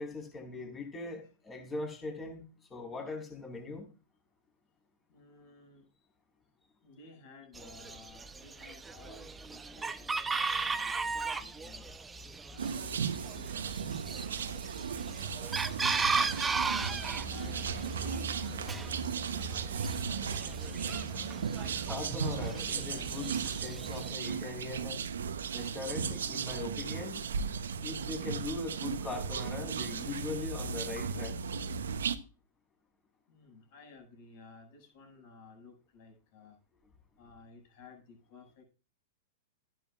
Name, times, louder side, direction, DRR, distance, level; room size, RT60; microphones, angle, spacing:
voice 1, 0.0-3.9 11.2-11.5 15.7-15.8 21.8-25.0 25.5-27.2 27.8-31.4, left 3 dB, 20° left, 4.9 m, -41 dB
voice 2, 5.1-5.9 6.8-11.9 12.5-14.6 15.7-19.0 19.2-20.6 33.3-36.6 37.2-38.6, left 4 dB, 60° left, 7.3 m, -55 dB
Chicken rooster, 7.5-24.1, right 4 dB, 15° right, 0.9 m, -37 dB
sound 1, 12.6-32.2, right 6 dB, 85° right, 1.0 m, -36 dB
sound 2, 22.1-24.3, right 9 dB, 40° right, 1.0 m, -48 dB
14.0 x 11.0 x 2.5 m
hypercardioid pair, 115°, 0 cm